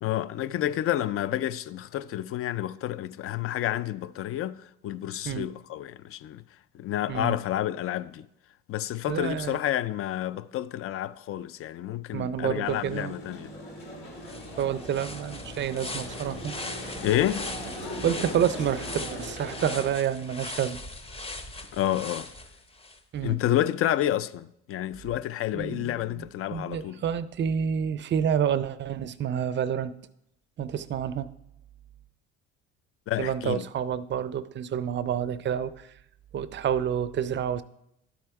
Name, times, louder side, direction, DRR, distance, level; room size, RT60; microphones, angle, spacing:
voice 1, 0.0-6.4 6.7-8.3 8.7-13.5 17.0-17.5 21.7-22.3 23.2-27.0 33.1-33.7, left 12 dB, 45° left, 0.4 m, -29 dB
voice 2, 9.1-9.6 12.1-13.1 14.6-16.5 18.0-20.8 23.1-23.4 25.5-26.3 26.5-29.9 30.6-31.3 33.2-35.9 36.3-37.6, right 9 dB, 40° right, 0.4 m, -29 dB
sound 1, 12.6-19.9, equal, 85° left, 3.6 m, -39 dB
sound 2, 13.8-13.9 14.2-23.0, left 2 dB, 20° left, 0.7 m, -40 dB
11.5 x 4.3 x 4.6 m
supercardioid pair, 90°, 31 cm